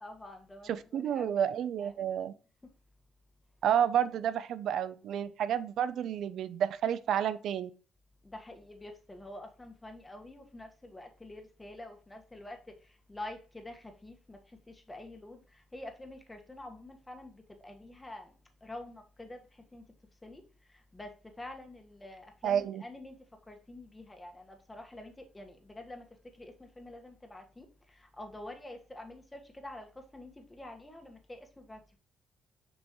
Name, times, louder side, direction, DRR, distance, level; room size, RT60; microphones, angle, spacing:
voice 1, 0.0-0.7 1.1-1.4 2.0-2.1 8.3-12.6 13.1-14.4 14.9-15.4 15.7-17.3 17.6-18.3 18.6-19.4 19.7-19.8 20.2-20.4 20.9-21.1 21.4-23.2 23.5-26.0 26.4-27.7 28.2-29.9 30.1-32.0, left 1 dB, 15° left, 4 dB, 1.5 m, -47 dB
voice 2, 0.6-2.3 3.6-7.7 22.4-22.8, right 9 dB, 75° right, 15 dB, 0.6 m, -30 dB
6.9 x 5.4 x 3.1 m, 0.37 s
cardioid pair, 90°, 0 cm